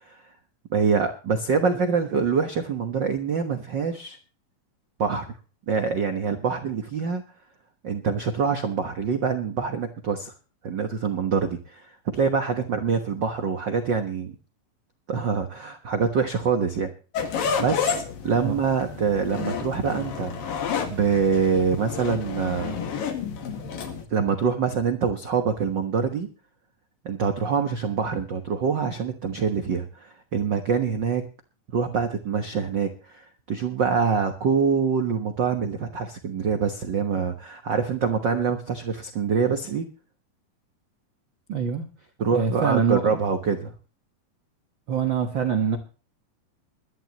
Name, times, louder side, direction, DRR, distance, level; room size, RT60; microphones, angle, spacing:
voice 1, 0.7-4.2 5.0-5.3 5.7-7.2 7.8-10.3 10.6-14.3 15.1-16.9 17.3-20.6 20.9-22.8 24.1-26.3 27.0-31.2 31.7-39.9 42.2-43.7, right 5 dB, 75° right, 6 dB, 1.0 m, -25 dB
sound 1, 17.1-24.1, left 6 dB, 75° left, 3.7 m, -30 dB
voice 2, 41.5-41.9 42.3-43.2 44.9-45.8, right 6 dB, 55° right, 6 dB, 1.4 m, -24 dB
21.5 x 12.0 x 3.0 m, 0.36 s
omnidirectional pair, 4.1 m